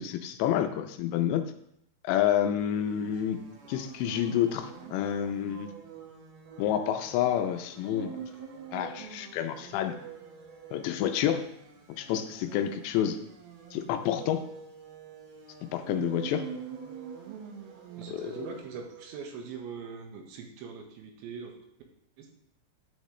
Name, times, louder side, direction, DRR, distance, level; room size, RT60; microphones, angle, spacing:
voice 1, 0.0-1.4 2.0-3.4 3.7-5.7 6.6-8.2 8.7-10.0 10.7-11.5 12.0-13.2 13.7-14.4 15.7-16.5 18.1-18.3, left 10 dB, 85° left, 8 dB, 2.8 m, -29 dB
sound 1, 2.6-19.2, right 7 dB, 70° right, 3.0 m, -45 dB
voice 2, 18.0-21.6 22.2-22.3, right 5 dB, 85° right, 2 dB, 3.5 m, -42 dB
9.4 x 8.8 x 3.2 m, 0.74 s
omnidirectional pair, 5.1 m